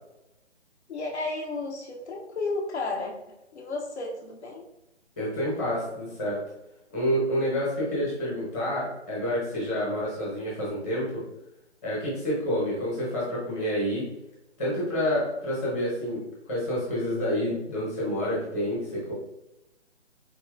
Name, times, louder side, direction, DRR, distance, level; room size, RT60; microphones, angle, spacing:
voice 1, 0.9-4.6, left 3 dB, 70° left, 0 dB, 0.8 m, -33 dB
voice 2, 5.2-6.4 6.9-11.2 11.8-14.0 14.6-16.2 16.5-19.1, equal, 15° left, -7 dB, 0.9 m, -28 dB
4.2 x 2.8 x 2.4 m, 0.88 s
figure-of-eight pair, 150°, 35 cm